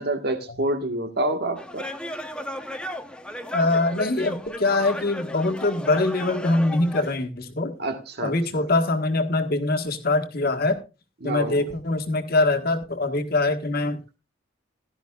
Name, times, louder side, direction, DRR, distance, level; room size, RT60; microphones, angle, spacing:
voice 1, 0.0-1.9 7.8-8.6 11.2-11.7, right 1 dB, 55° right, 1.5 m, -28 dB
sound 1, 1.6-7.2, left 1 dB, 5° left, 0.8 m, -35 dB
voice 2, 3.5-7.8 8.2-10.8 11.2-14.0, left 2 dB, 50° left, 1.5 m, -23 dB
16.0 x 12.0 x 2.4 m
head